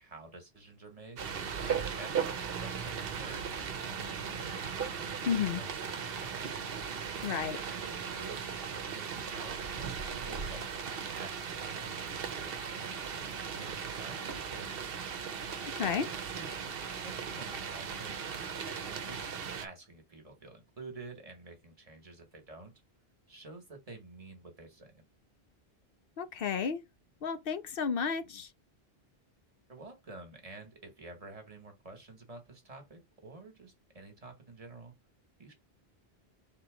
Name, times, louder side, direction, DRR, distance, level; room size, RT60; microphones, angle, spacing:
voice 1, 0.0-4.4 4.9-6.7 7.2-15.0 16.1-16.5 16.9-19.3 19.6-22.7 23.3-25.0 29.7-35.0 35.4-35.5, right 3 dB, 35° right, 1.3 m, -50 dB
sound 1, 1.2-19.7, right 6 dB, 65° right, 0.9 m, -37 dB
voice 2, 5.3-5.6 7.2-7.6 15.6-16.1 26.2-26.8 27.2-28.5, left 6 dB, 65° left, 0.8 m, -32 dB
3.8 x 2.9 x 4.8 m
omnidirectional pair, 1.0 m